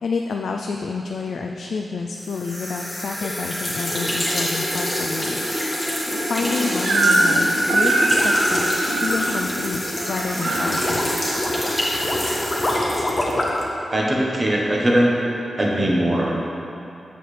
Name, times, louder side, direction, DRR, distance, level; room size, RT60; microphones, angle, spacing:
voice 1, 0.0-5.4 5.9-8.7 9.0-11.1, left 4 dB, 75° left, 2 dB, 0.3 m, -29 dB
sound 1, 2.2-13.7, equal, 10° left, 1.6 m, -26 dB
Crying sobbing / Screech, 6.8-7.4 7.7-9.2 10.0-10.7, right 2 dB, 85° right, 0.8 m, -20 dB
sound 2, 7.7-13.7, left 1 dB, 30° left, 0.8 m, -26 dB
voice 2, 13.9-15.1 15.6-16.4, right 1 dB, 30° right, -3 dB, 1.1 m, -20 dB
7.5 x 6.8 x 3.3 m, 2.8 s
wide cardioid pair, 125°, 0 cm